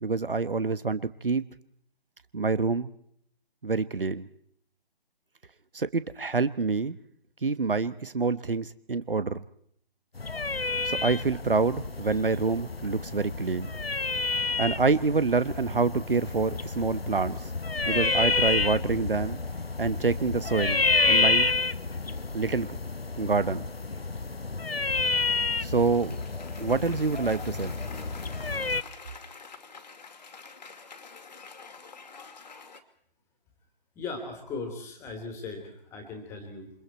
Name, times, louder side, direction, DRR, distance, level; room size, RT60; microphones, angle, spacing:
voice 1, 0.0-1.4 2.3-2.9 3.6-4.3 5.7-6.9 7.4-9.4 10.8-13.7 14.6-17.4 17.9-19.4 19.8-21.5 22.3-22.8 23.2-23.7 25.6-26.2 26.6-27.7, right 4 dB, 65° right, 15 dB, 1.2 m, -27 dB
sound 1, 10.2-28.8, left 3 dB, 85° left, 1.0 m, -29 dB
Cheering / Applause, 25.6-32.8, left 5 dB, 45° left, 2.5 m, -47 dB
voice 2, 33.9-36.7, left 3 dB, 10° left, 5 dB, 3.0 m, -38 dB
28.0 x 26.0 x 4.3 m, 0.68 s
figure-of-eight pair, 150°, 29 cm